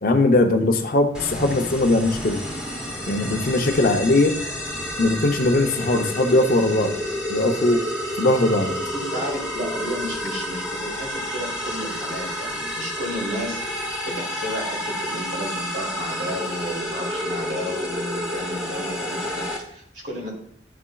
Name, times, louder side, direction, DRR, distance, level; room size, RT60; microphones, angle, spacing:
voice 1, 0.0-2.4 3.1-4.4 5.0-6.9 7.3-7.8 8.2-8.7, left 2 dB, 50° left, 4 dB, 0.6 m, -20 dB
sound 1, 1.1-19.6, equal, 5° right, 1.0 m, -30 dB
voice 2, 8.9-20.3, equal, 70° right, -3 dB, 2.3 m, -32 dB
11.0 x 4.2 x 2.3 m, 0.69 s
head